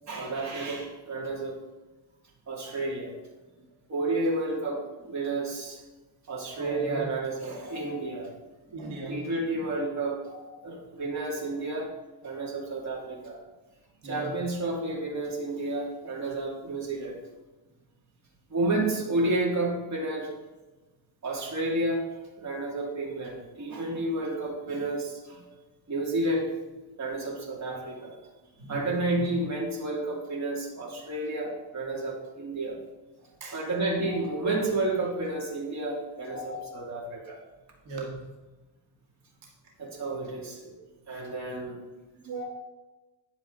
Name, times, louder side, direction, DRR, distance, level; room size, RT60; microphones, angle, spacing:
voice 1, 0.1-1.6 2.5-3.2 3.9-5.8 6.3-8.3 8.7-10.2 10.6-11.9 12.2-13.4 14.0-17.2 18.5-20.3 21.2-22.1 22.4-25.4 25.9-26.5 27.0-28.2 28.6-32.8 33.5-37.4 39.8-40.7 41.1-41.8, right 2 dB, 40° right, -3 dB, 2.5 m, -31 dB
voice 2, 6.6-7.1 7.6-8.0 8.7-9.3 10.3-10.8 14.0-14.3 25.4-25.6 26.9-27.0 33.4-33.7 34.0-34.4 36.3-36.7 37.9-38.4 42.2-42.4, right 2 dB, 75° right, -2 dB, 1.8 m, -39 dB
9.9 x 7.1 x 3.8 m, 1.1 s
cardioid pair, 130°, 43 cm